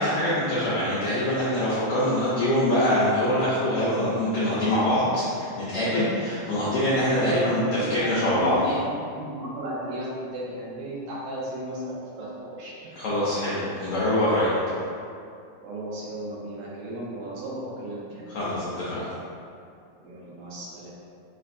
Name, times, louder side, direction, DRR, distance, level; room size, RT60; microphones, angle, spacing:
voice 1, 0.0-7.6 7.9-8.7 13.0-14.5 18.3-19.0, left 1 dB, 75° left, -10 dB, 1.4 m, -24 dB
voice 2, 7.2-7.5 7.8-13.0 15.6-18.3 20.0-20.9, right 1 dB, 80° right, -6 dB, 2.2 m, -34 dB
6.7 x 2.5 x 2.5 m, 2.5 s
omnidirectional pair, 3.5 m